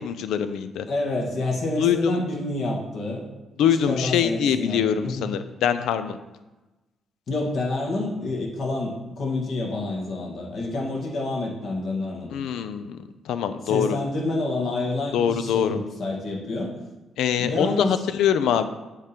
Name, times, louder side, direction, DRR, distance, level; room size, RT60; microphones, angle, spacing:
voice 1, 0.0-0.9 1.8-2.2 3.6-6.2 12.3-14.0 15.1-15.8 17.2-18.7, left 8 dB, 85° left, 11 dB, 0.5 m, -24 dB
voice 2, 0.9-3.2 3.9-5.3 7.3-12.3 13.7-16.8 17.4-17.9, left 2 dB, 60° left, -2 dB, 1.8 m, -28 dB
8.1 x 3.7 x 4.5 m, 1.1 s
cardioid pair, 90°, 0 cm